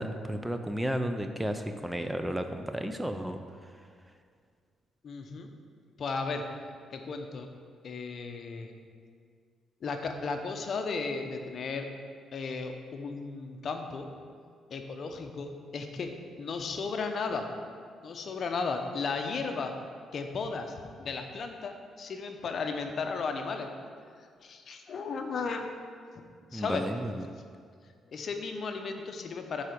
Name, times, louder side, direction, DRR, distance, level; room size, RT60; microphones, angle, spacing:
voice 1, 0.0-3.7 26.5-27.3, equal, 5° right, 7 dB, 0.5 m, -33 dB
voice 2, 5.0-5.5 6.0-6.4 6.9-7.5 7.8-8.7 9.8-11.9 12.3-14.1 14.7-16.1 16.4-17.5 18.0-19.7 20.1-20.7 21.0-23.7 24.4-25.6 26.5-26.8 28.1-29.6, left 4 dB, 55° left, 5 dB, 0.8 m, -35 dB
7.4 x 4.8 x 6.8 m, 2.1 s
cardioid pair, 90°, 0 cm